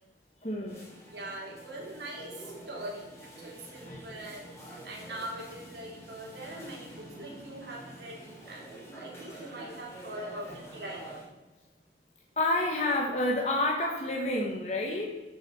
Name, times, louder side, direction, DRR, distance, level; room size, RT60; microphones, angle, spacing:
voice 1, 0.4-0.9 3.9-4.0 12.4-15.2, left 1 dB, 40° left, -2 dB, 1.5 m, -29 dB
sound 1, 0.7-11.2, right 1 dB, 15° left, 3.4 m, -47 dB
voice 2, 1.1-4.5 4.8-8.2 8.5-11.1, right 1 dB, 70° right, -3 dB, 3.6 m, -42 dB
14.0 x 7.3 x 4.4 m, 1.2 s
head